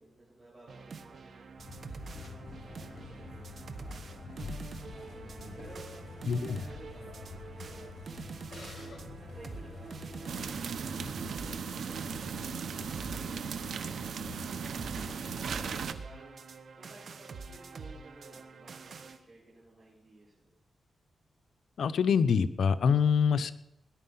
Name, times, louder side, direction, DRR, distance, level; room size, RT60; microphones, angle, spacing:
voice 1, 0.0-1.4 2.1-6.1 6.7-7.9 8.7-12.6 13.1-14.4 14.7-20.5, right 2 dB, 30° right, -7 dB, 7.6 m, -56 dB
sound 1, 0.7-19.2, right 4 dB, 60° right, 1.3 m, -46 dB
sound 2, 1.6-15.8, left 3 dB, 55° left, 4.6 m, -46 dB
voice 2, 6.3-6.6 21.8-23.5, left 6 dB, 75° left, 11 dB, 0.8 m, -25 dB
sound 3, 10.3-15.9, right 6 dB, 75° right, 1.0 m, -37 dB
18.5 x 10.5 x 5.7 m, 0.84 s
cardioid pair, 90°, 0 cm